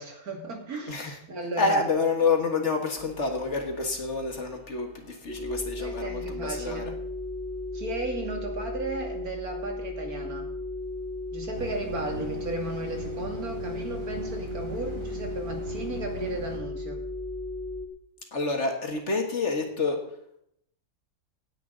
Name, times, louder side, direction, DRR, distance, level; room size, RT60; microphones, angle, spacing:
voice 1, 0.0-1.8 5.8-6.9 7.7-10.5 11.3-17.0, right 2 dB, 85° right, 2 dB, 2.9 m, -35 dB
voice 2, 0.9-1.2 1.6-6.8 18.3-20.0, left 4 dB, 50° left, 4 dB, 1.9 m, -28 dB
sound 1, 3.0-17.9, right 2 dB, 10° right, 1.5 m, -43 dB
sound 2, 5.3-17.9, left 3 dB, 10° left, 0.6 m, -36 dB
sound 3, 11.5-16.6, right 3 dB, 65° right, 3.3 m, -40 dB
16.5 x 10.0 x 4.0 m, 0.73 s
omnidirectional pair, 1.5 m